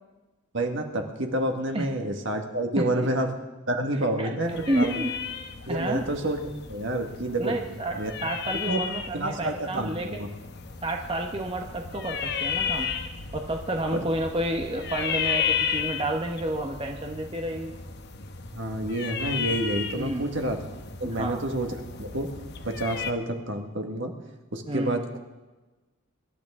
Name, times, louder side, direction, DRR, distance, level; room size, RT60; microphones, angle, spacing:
voice 1, 0.5-3.4 3.7-5.0 5.7-6.4 6.7-7.6 8.0-8.1 8.7-8.8 9.1-10.3 13.9-14.0 18.5-20.6 21.0-22.3 22.6-24.1 24.5-25.2, right 1 dB, 60° right, 4 dB, 1.7 m, -29 dB
sound 1, 4.5-23.1, left 7 dB, 50° left, 0.9 m, -34 dB
voice 2, 4.7-5.2 5.7-6.1 7.4-10.2 10.8-12.9 13.3-17.7 20.0-20.3 21.0-21.4 24.7-25.0, right 1 dB, 25° right, 2 dB, 0.9 m, -30 dB
24.5 x 12.0 x 3.7 m, 1.2 s
head